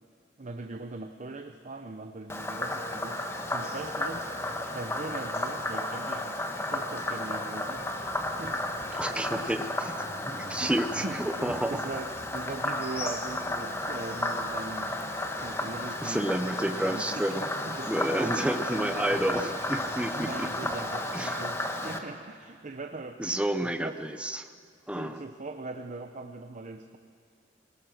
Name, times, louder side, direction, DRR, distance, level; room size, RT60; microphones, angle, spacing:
voice 1, 0.4-4.3 4.6-8.7 9.0-9.5 10.6-10.7 11.0-15.0 15.4-16.3 16.6-17.9 18.2-19.5 20.1-23.2 23.6-24.0 24.9-27.0, right 2 dB, 45° right, 7 dB, 0.7 m, -41 dB
Frog, 2.3-22.0, left 1 dB, 15° left, 1.3 m, -33 dB
sound 1, 7.5-16.5, equal, 65° right, 3.0 m, -53 dB
voice 2, 9.0-11.8 16.0-17.5 17.9-20.5 21.1-21.6 23.2-24.5 24.9-25.2, right 1 dB, 5° right, 8 dB, 0.7 m, -30 dB
22.5 x 18.0 x 6.4 m, 2.1 s
head